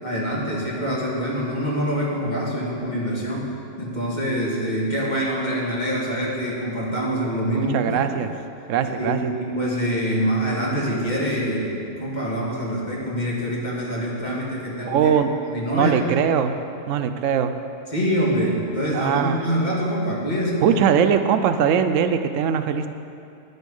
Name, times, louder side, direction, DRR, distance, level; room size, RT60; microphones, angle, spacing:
voice 1, 0.0-3.5 3.8-8.2 8.8-15.1 15.5-16.1 17.9-20.8, equal, 35° left, -4 dB, 2.0 m, -25 dB
voice 2, 7.5-8.3 8.7-9.3 14.8-15.3 15.7-16.5 16.9-17.5 18.9-19.4 20.6-22.9, right 8 dB, 90° right, 9 dB, 1.0 m, -21 dB
10.0 x 8.2 x 5.4 m, 2.6 s
omnidirectional pair, 1.3 m